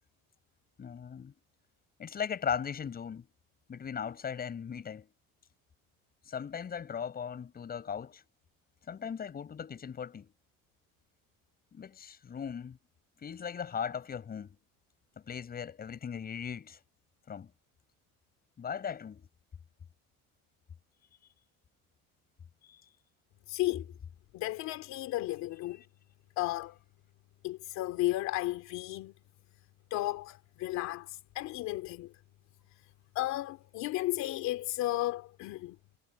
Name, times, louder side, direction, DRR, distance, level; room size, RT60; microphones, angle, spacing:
voice 1, 0.8-1.4 2.0-3.3 3.7-5.1 6.3-8.2 8.9-10.3 11.7-12.8 13.2-14.6 15.2-16.8 17.3-17.5 18.6-19.3 22.6-22.8, left 7 dB, 30° left, 7.0 m, -38 dB
voice 2, 23.5-23.9 24.3-25.8 26.4-26.7 27.4-29.1 29.9-32.1 33.1-35.7, left 16 dB, 60° left, 2.6 m, -34 dB
cardioid pair, 140°, 31 cm